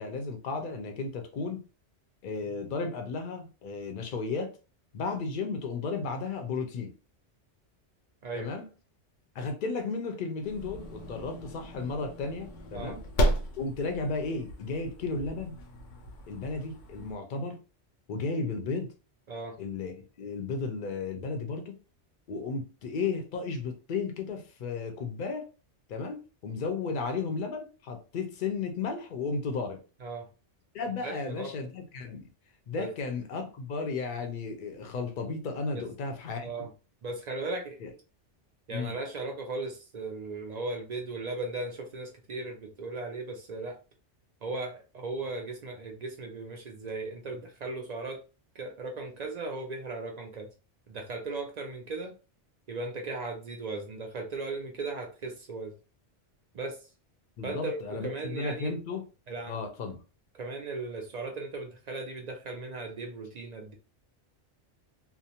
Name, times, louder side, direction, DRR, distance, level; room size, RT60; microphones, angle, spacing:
voice 1, 0.0-1.6 2.2-4.6 4.9-6.9 8.3-8.7 9.3-13.0 13.6-15.6 16.3-17.6 18.1-18.9 19.6-21.8 22.3-25.5 25.9-29.8 30.7-32.3 32.7-36.5 37.8-37.9 38.7-38.9 57.4-59.0 59.5-60.0, left 4 dB, 55° left, 0.6 m, -34 dB
sound 1, 10.4-17.1, equal, 90° left, 0.9 m, -34 dB
voice 2, 19.3-19.6 30.0-30.3 31.0-31.5 32.8-32.9 35.7-35.8 36.4-36.7 37.0-37.8 38.7-43.8 44.4-48.2 48.5-50.5 50.9-52.1 52.7-55.8 56.5-56.9 57.4-58.8 59.3-59.6 60.3-63.7, right 3 dB, 60° right, 0.4 m, -37 dB
2.5 x 2.0 x 2.8 m
omnidirectional pair, 1.2 m